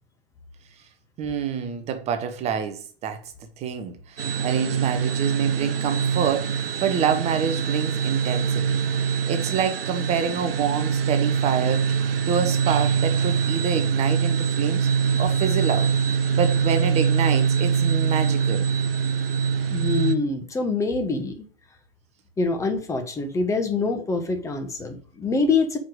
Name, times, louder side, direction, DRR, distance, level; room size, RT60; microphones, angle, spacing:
voice 1, 1.2-3.2 3.6-8.8 9.1-11.9 12.3-15.9 16.3-18.7, right 7 dB, 20° right, 0.8 m, -27 dB
sound 1, 4.2-20.2, right 6 dB, 70° right, 0.7 m, -23 dB
voice 2, 19.7-21.4 22.4-25.8, left 3 dB, 10° left, 1.1 m, -25 dB
5.7 x 5.0 x 5.0 m
figure-of-eight pair, 115°, 29 cm